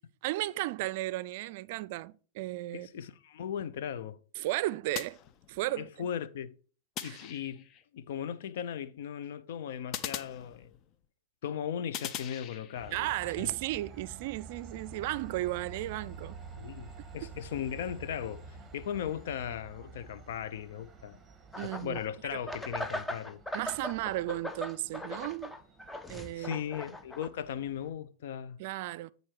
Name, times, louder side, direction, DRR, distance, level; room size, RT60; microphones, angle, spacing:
voice 1, 0.2-2.9 4.4-5.2 5.5-6.1 7.0-7.2 12.9-16.4 17.2-17.3 21.6-22.0 23.5-25.6 26.1-26.6 28.6-29.1, right 17 dB, 65° right, 0.4 m, -34 dB
voice 2, 2.7-4.2 5.8-6.6 7.0-10.7 11.4-13.1 13.4-13.5 16.6-21.2 21.6-23.4 26.3-28.6, left 9 dB, 75° left, 0.6 m, -38 dB
sound 1, 4.9-5.9 7.0-7.8 9.9-11.0 11.9-13.0, left 9 dB, 45° left, 0.7 m, -41 dB
Train, 12.8-27.9, right 4 dB, 15° right, 1.5 m, -50 dB
sound 2, 21.5-22.0 22.5-27.3, left 1 dB, 10° left, 0.7 m, -39 dB
9.1 x 3.9 x 4.7 m
hypercardioid pair, 115°, 0 cm